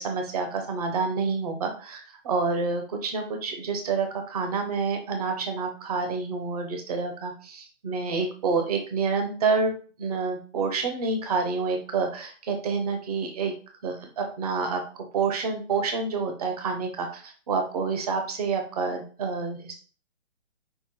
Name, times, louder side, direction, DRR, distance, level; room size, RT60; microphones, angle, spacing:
voice 1, 0.0-9.7 10.0-13.5 13.8-14.8 15.1-19.9, right 4 dB, 30° right, 4 dB, 0.8 m, -28 dB
5.7 x 2.1 x 4.3 m, 0.39 s
hypercardioid pair, 155°, 38 cm